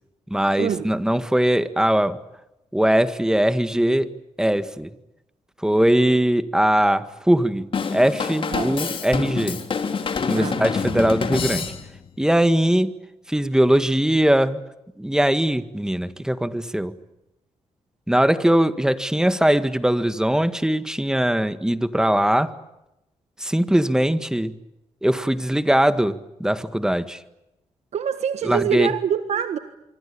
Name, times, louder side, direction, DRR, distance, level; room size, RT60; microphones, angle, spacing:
voice 1, 0.3-2.2 2.7-4.1 4.4-4.9 5.6-9.6 10.3-11.7 12.2-12.9 13.3-14.6 15.0-16.9 18.1-22.5 23.4-24.6 25.0-27.2 28.4-28.9, right 1 dB, 5° right, 11 dB, 1.8 m, -20 dB
Drum kit / Drum, 7.7-12.1, left 5 dB, 50° left, 3.3 m, -26 dB
voice 2, 27.9-29.6, right 8 dB, 75° right, 9 dB, 1.5 m, -24 dB
26.0 x 24.5 x 8.6 m, 0.91 s
cardioid pair, 90°, 11 cm